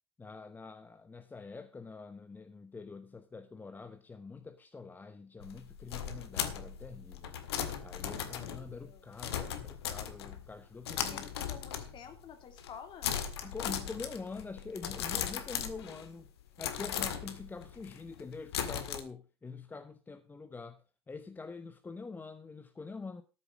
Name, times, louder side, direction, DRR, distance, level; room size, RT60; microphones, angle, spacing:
voice 1, 0.2-7.4 7.8-11.3 13.4-16.3 16.6-23.2, left 4 dB, 15° left, 0.9 m, -45 dB
sound 1, 5.4-10.5 10.8-12.2 12.5-12.8 13.0-16.2 16.6-19.0, left 9 dB, 80° left, 1.9 m, -38 dB
voice 2, 8.2-9.0 11.0-13.1, left 7 dB, 35° left, 2.6 m, -51 dB
13.5 x 6.9 x 6.1 m
hypercardioid pair, 100°, 13 cm